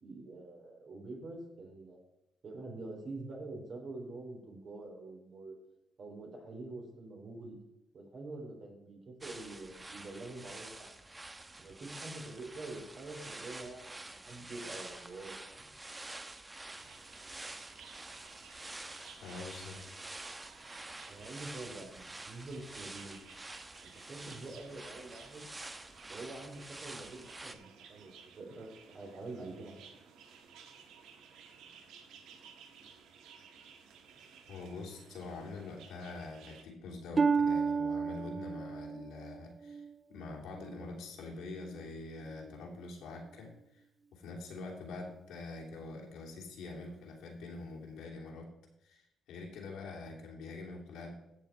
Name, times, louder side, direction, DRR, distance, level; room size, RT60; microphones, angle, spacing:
voice 1, 0.0-2.0 2.4-5.5 6.0-7.6 7.9-10.9 11.6-13.8 14.1-15.7 21.1-23.2 23.8-25.5 26.1-29.9, right 2 dB, 50° right, 0 dB, 4.2 m, -46 dB
sound 1, 9.2-27.5, right 2 dB, 20° right, 0.9 m, -48 dB
sound 2, 16.8-36.6, right 6 dB, 85° right, 1.4 m, -57 dB
voice 2, 19.2-19.8 34.5-39.8 40.1-43.8 44.1-48.5 48.8-51.1, left 3 dB, 85° left, -1 dB, 2.9 m, -45 dB
Harp, 37.2-40.9 41.5-41.9 42.5-42.6, right 5 dB, 35° right, 0.4 m, -33 dB
14.0 x 7.2 x 4.6 m, 0.87 s
cardioid pair, 90°, 0 cm